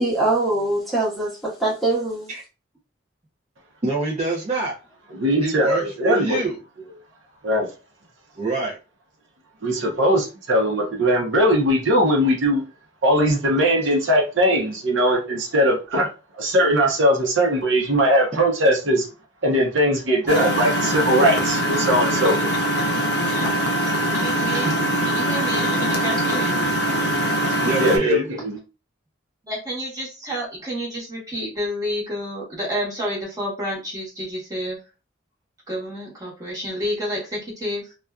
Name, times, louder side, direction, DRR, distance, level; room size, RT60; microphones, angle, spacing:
voice 1, 0.0-2.3, right 2 dB, ahead, 0.8 m, -23 dB
voice 2, 3.8-4.7 5.4-6.6 8.4-8.8 24.5-24.7 27.5-28.2, right 3 dB, 35° right, 0.5 m, -26 dB
voice 3, 5.1-6.4 7.4-7.7 9.6-12.6 13.0-16.1 16.4-19.1 19.4-22.5 27.8-28.6, equal, 75° right, 0.8 m, -20 dB
Engine, 20.3-28.0, right 1 dB, 55° left, 0.5 m, -22 dB
voice 4, 23.8-26.6 29.4-34.8 35.7-37.9, equal, 20° right, 1.0 m, -30 dB
2.5 x 2.3 x 2.3 m
head